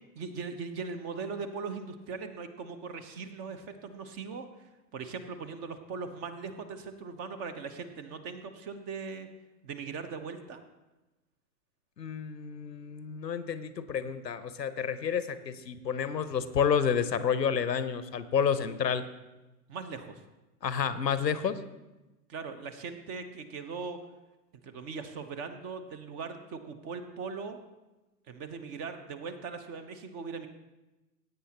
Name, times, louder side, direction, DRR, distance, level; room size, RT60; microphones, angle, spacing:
voice 1, 0.2-9.3 9.6-10.6 19.7-20.2 22.3-24.0 24.6-27.6 28.3-30.5, right 5 dB, 30° right, 9 dB, 0.9 m, -40 dB
voice 2, 12.0-19.0 20.6-21.6, left 7 dB, 85° left, 14 dB, 0.8 m, -30 dB
16.0 x 8.7 x 2.9 m, 1.1 s
figure-of-eight pair, 105°, 48 cm